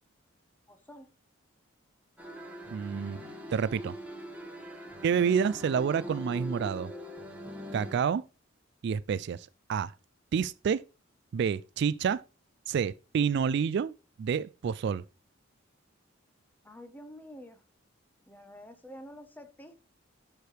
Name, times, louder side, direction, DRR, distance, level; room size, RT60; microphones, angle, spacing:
voice 1, 0.7-1.1 4.9-5.2 16.6-17.6 18.3-19.8, equal, 10° left, 1.0 m, -49 dB
sound 1, 2.2-7.9, equal, 10° right, 1.6 m, -42 dB
voice 2, 2.7-3.2 3.5-3.9 5.0-6.9 7.7-8.2 8.8-9.9 10.3-10.8 11.3-12.2 12.7-13.9 14.2-15.0, right 7 dB, 60° right, 0.3 m, -28 dB
11.5 x 4.7 x 3.2 m
head